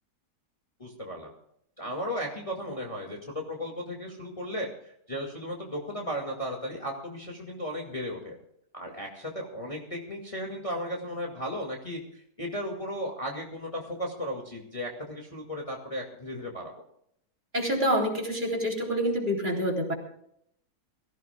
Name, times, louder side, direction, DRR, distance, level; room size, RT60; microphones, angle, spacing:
voice 1, 0.8-1.3 1.8-8.4 8.7-16.7, equal, 20° left, -1 dB, 2.3 m, -35 dB
voice 2, 17.5-19.9, equal, 30° right, -1 dB, 3.8 m, -27 dB
23.0 x 15.5 x 2.4 m, 0.72 s
omnidirectional pair, 1.8 m